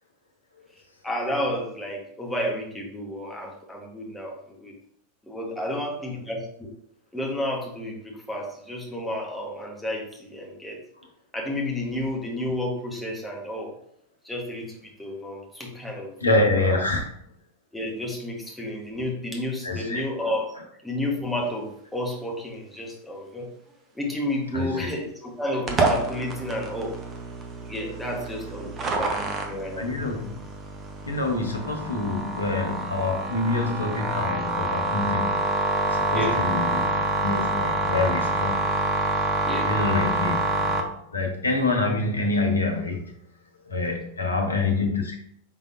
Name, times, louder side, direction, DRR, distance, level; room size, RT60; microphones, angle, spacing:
voice 1, 1.0-4.7 5.2-6.7 7.1-10.8 11.3-13.7 14.2-16.1 16.5-16.8 17.7-20.5 20.8-23.5 23.9-27.0 27.6-29.9 36.1-36.4 39.4-39.7, left 1 dB, 5° left, -2 dB, 1.2 m, -31 dB
voice 2, 16.2-17.1 19.6-20.0 24.5-24.9 29.8-30.3 31.0-35.3 35.9-38.6 39.7-40.8 41.1-43.1 43.7-45.1, left 3 dB, 75° left, 3 dB, 0.9 m, -26 dB
sound 1, 25.7-40.8, right 2 dB, 25° right, 0.8 m, -27 dB
5.6 x 3.5 x 2.5 m, 0.69 s
figure-of-eight pair, 90°, 0 cm